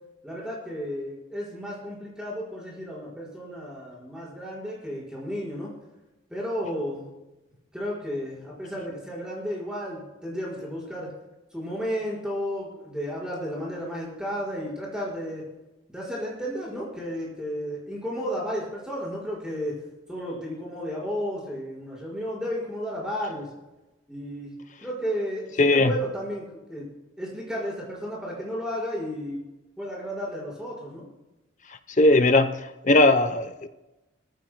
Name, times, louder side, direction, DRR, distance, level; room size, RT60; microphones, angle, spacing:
voice 1, 0.2-5.7 6.3-7.1 7.7-11.1 11.5-15.4 15.9-19.7 20.1-23.5 24.1-24.6 24.8-26.8 27.2-29.4 29.8-31.0, equal, 5° right, -5 dB, 5.0 m, -33 dB
voice 2, 25.6-25.9 32.0-33.7, left 2 dB, 40° left, 10 dB, 0.7 m, -19 dB
22.5 x 14.5 x 2.2 m, 1.0 s
head